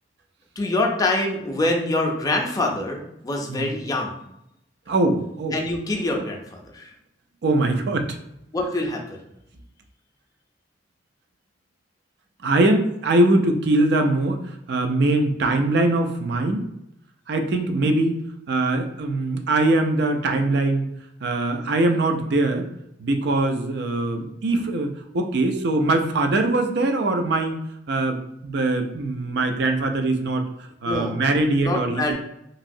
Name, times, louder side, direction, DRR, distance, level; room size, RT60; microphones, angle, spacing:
voice 1, 0.6-4.1 5.5-6.9 8.5-9.2 30.8-31.2 31.6-32.1, left 2 dB, 20° left, 1 dB, 0.4 m, -25 dB
voice 2, 4.9-5.5 7.4-8.2 12.4-16.7 17.3-18.2 18.5-20.9 21.2-22.7 23.0-27.6 27.9-32.1, right 2 dB, 60° right, 5 dB, 0.4 m, -22 dB
3.0 x 2.7 x 2.6 m, 0.82 s
head